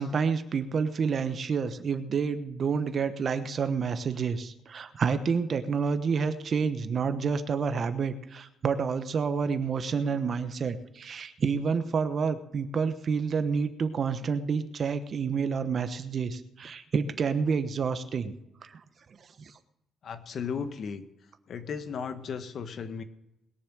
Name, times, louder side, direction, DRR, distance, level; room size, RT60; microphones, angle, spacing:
voice 1, 0.0-18.3 18.6-18.8 19.4-19.5, right 5 dB, 50° right, 11 dB, 1.1 m, -29 dB
voice 2, 20.0-21.0 21.5-23.0, left 6 dB, 60° left, 10 dB, 1.4 m, -35 dB
21.0 x 7.1 x 6.3 m, 0.91 s
cardioid pair, 90°, 0 cm